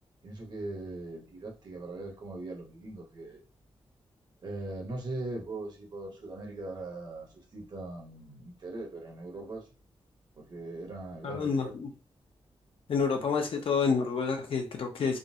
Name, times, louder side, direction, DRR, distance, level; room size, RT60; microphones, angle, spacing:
voice 1, 0.2-3.4 4.4-9.7 10.4-11.7, right 2 dB, 45° right, 1.0 m, -40 dB
voice 2, 11.2-11.9 12.9-15.2, left 5 dB, 65° left, 0.7 m, -28 dB
3.6 x 2.0 x 2.7 m
wide cardioid pair, 130°, 10 cm